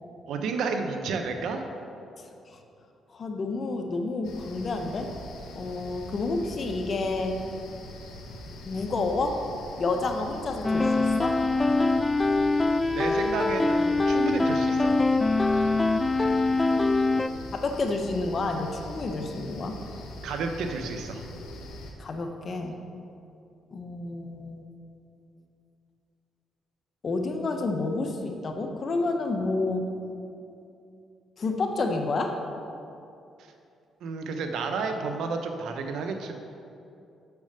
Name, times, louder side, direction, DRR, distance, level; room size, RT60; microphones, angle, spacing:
voice 1, 0.3-1.7 12.9-15.0 20.2-21.3 34.0-36.3, right 4 dB, 80° right, 5 dB, 0.8 m, -31 dB
voice 2, 2.2-2.6 3.1-5.1 5.5-7.4 8.6-9.4 9.8-11.4 16.6-16.7 17.5-19.8 22.0-22.8 23.7-24.7 27.0-29.9 31.4-32.4, left 3 dB, 45° left, 4 dB, 1.0 m, -29 dB
sound 1, 4.2-21.9, left 1 dB, 80° left, 1.4 m, -42 dB
sound 2, 10.6-17.3, left 3 dB, 20° left, 0.3 m, -23 dB
7.0 x 6.5 x 6.7 m, 2.7 s
cardioid pair, 90°, 0 cm